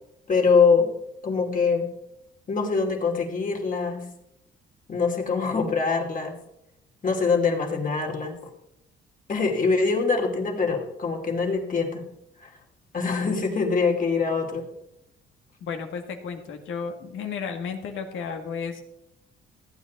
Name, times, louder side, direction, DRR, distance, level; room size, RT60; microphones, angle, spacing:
voice 1, 0.3-0.9 1.2-1.9 2.5-4.0 4.9-6.4 7.0-8.4 9.3-12.0 12.4-12.5 12.9-14.6, left 4 dB, 40° left, 1 dB, 2.7 m, -23 dB
voice 2, 15.6-18.8, left 6 dB, 80° left, 4 dB, 1.9 m, -33 dB
15.0 x 8.9 x 4.1 m, 0.82 s
cardioid pair, 90°, 20 cm